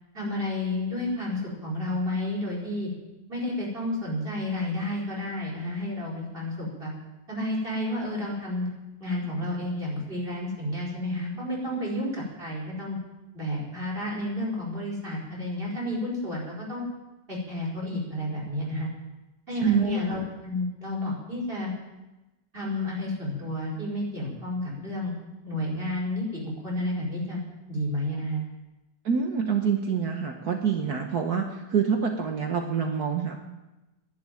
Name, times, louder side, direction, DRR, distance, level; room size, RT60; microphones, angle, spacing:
voice 1, 0.1-2.9 3.3-6.9 7.3-8.7 9.0-13.0 13.3-16.8 17.3-18.9 19.5-21.7 22.5-25.2 25.4-27.4 27.7-28.4, left 1 dB, 30° right, -3 dB, 5.0 m, -31 dB
voice 2, 19.6-20.0 29.1-33.4, right 6 dB, 60° right, 3 dB, 1.6 m, -26 dB
11.5 x 11.0 x 9.2 m, 1.0 s
omnidirectional pair, 2.0 m